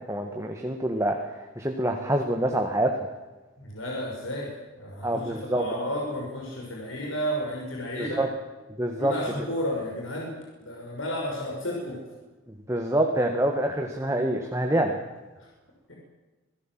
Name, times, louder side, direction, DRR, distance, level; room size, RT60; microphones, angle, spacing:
voice 1, 0.1-2.9 5.0-5.6 8.0-8.3 8.8-9.1 12.7-15.0, right 1 dB, 15° right, 3 dB, 1.7 m, -26 dB
voice 2, 3.6-4.5 4.8-8.2 9.0-10.3 10.6-12.0 15.9-16.0, equal, 70° left, -2 dB, 5.7 m, -32 dB
26.0 x 17.5 x 7.7 m, 1.1 s
head